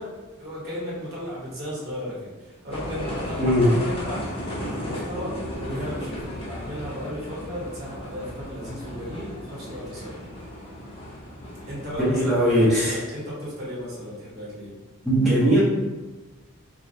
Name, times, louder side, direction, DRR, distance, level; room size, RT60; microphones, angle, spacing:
voice 1, 0.0-10.3 11.7-12.5 12.8-14.8, equal, 50° right, -6 dB, 1.4 m, -35 dB
sound 1, 2.7-12.9, equal, 25° left, 0.6 m, -35 dB
voice 2, 3.4-3.7 12.0-13.0 15.0-15.6, equal, ahead, -10 dB, 1.0 m, -19 dB
4.9 x 2.4 x 2.7 m, 1.2 s
head